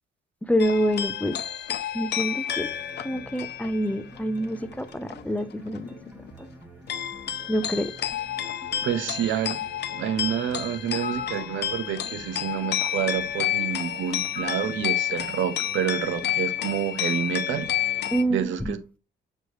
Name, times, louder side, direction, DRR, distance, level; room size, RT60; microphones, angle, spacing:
voice 1, 0.4-1.4 1.9-2.7 3.0-5.9 6.4-6.5 7.5-7.9 18.1-18.8, equal, 5° left, 0.5 m, -26 dB
sound 1, 0.6-5.2 5.5-6.3 6.9-18.2, left 10 dB, 60° left, 0.7 m, -30 dB
sound 2, 2.6-18.4, right 1 dB, 10° right, 1.2 m, -48 dB
voice 2, 8.8-9.6 9.9-17.7 18.3-18.8, right 9 dB, 75° right, 0.7 m, -28 dB
sound 3, 11.0-11.4 14.3-14.7, left 5 dB, 40° left, 1.3 m, -36 dB
6.2 x 3.1 x 2.7 m
cardioid pair, 90°, 20 cm